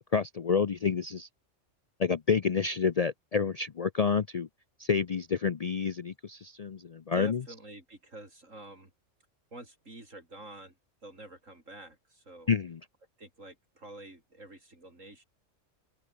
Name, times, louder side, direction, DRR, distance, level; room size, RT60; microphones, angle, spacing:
voice 1, 0.1-1.3 2.0-4.5 4.8-7.4 12.5-12.8, left 6 dB, 50° left, 0.5 m, -28 dB
voice 2, 7.1-8.9 9.5-10.8 11.0-12.5 13.2-15.2, right 2 dB, 85° right, 7.1 m, -48 dB
open air
omnidirectional pair, 1.3 m